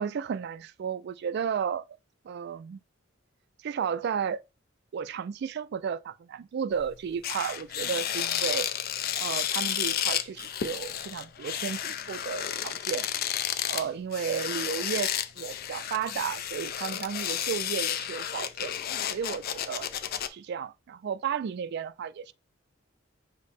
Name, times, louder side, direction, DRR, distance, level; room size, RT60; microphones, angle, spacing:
voice 1, 0.0-1.8 2.2-2.8 3.6-4.4 4.9-8.7 9.1-13.1 13.7-18.7 19.1-19.9 20.3-22.3, right 7 dB, 55° right, 0.3 m, -33 dB
sound 1, 6.7-6.9 7.2-20.3, left 10 dB, 50° left, 0.4 m, -32 dB
5.1 x 2.1 x 4.2 m
head